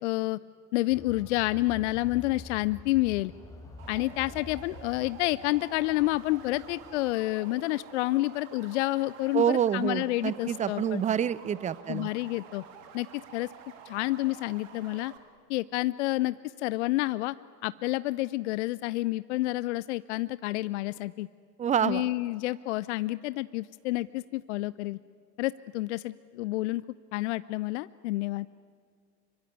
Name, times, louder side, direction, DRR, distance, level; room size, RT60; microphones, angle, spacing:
voice 1, 0.0-0.4 0.7-3.3 3.9-11.0 11.9-12.6 12.9-13.5 13.9-15.1 15.5-17.3 17.6-21.3 21.8-25.0 25.4-26.8 27.1-28.5, left 18 dB, 45° left, 18 dB, 0.6 m, -29 dB
sound 1, 0.9-7.1, left 3 dB, 5° left, 4.2 m, -47 dB
sound 2, 3.8-15.2, right 7 dB, 50° right, 3.0 m, -49 dB
voice 2, 9.3-12.1 21.6-22.0, right 9 dB, 15° right, 19 dB, 0.7 m, -27 dB
26.0 x 24.0 x 9.5 m, 2.2 s
figure-of-eight pair, 85°, 48 cm